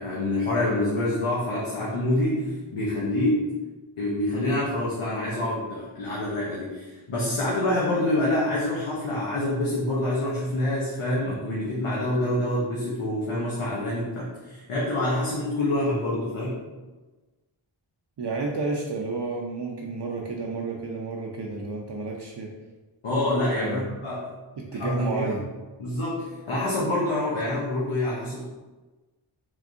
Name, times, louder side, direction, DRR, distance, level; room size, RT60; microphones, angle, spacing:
voice 1, 0.0-3.5 4.0-16.6 23.0-24.2 24.7-25.4 25.8-28.4, left 1 dB, 85° left, -6 dB, 0.8 m, -26 dB
voice 2, 18.2-22.5 23.5-24.0 24.6-25.4, right 3 dB, 55° right, -1 dB, 0.5 m, -31 dB
3.6 x 3.2 x 2.5 m, 1.2 s
wide cardioid pair, 50°, 49 cm